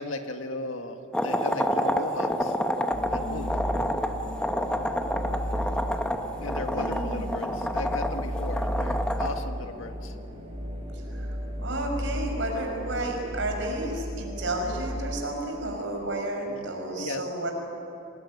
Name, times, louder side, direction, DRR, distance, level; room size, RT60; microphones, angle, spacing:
voice 1, 0.0-2.6 3.1-3.6 6.4-10.1 16.5-16.6 17.0-17.2, left 2 dB, 80° left, 6 dB, 1.9 m, -36 dB
sound 1, 0.7-16.1, equal, 30° right, 5.2 m, -47 dB
sound 2, 1.1-9.4, equal, 5° left, 1.2 m, -29 dB
sound 3, 2.9-15.4, equal, 15° right, 3.2 m, -34 dB
voice 2, 6.7-7.4 10.9-11.3 11.6-17.5, right 1 dB, 65° right, 2 dB, 6.0 m, -32 dB
26.0 x 20.0 x 9.8 m, 2.8 s
head